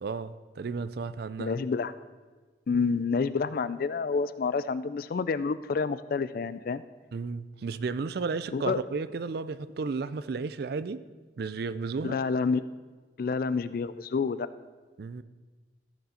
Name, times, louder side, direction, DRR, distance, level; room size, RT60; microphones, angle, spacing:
voice 1, 0.0-1.6 7.1-11.0 11.4-12.2 15.0-15.2, right 4 dB, 55° right, 15 dB, 0.4 m, -33 dB
voice 2, 1.4-1.9 2.7-6.8 8.5-8.8 12.0-12.7 13.2-14.5, left 4 dB, 50° left, 15 dB, 0.3 m, -28 dB
14.5 x 6.8 x 4.2 m, 1.3 s
head